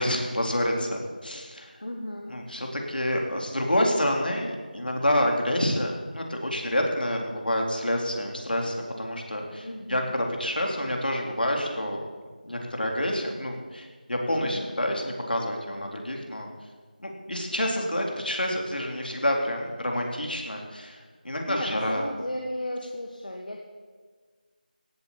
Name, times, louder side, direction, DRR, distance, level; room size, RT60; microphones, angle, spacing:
voice 1, 0.0-1.7 2.3-12.0 12.5-16.5 17.0-21.0 21.2-22.0, left 1 dB, 75° left, 1 dB, 4.0 m, -28 dB
voice 2, 1.8-2.3 9.6-10.2 14.4-14.8 21.5-23.6, left 1 dB, 55° left, 1 dB, 1.7 m, -35 dB
17.0 x 8.7 x 8.6 m, 1.5 s
figure-of-eight pair, 175°, 5 cm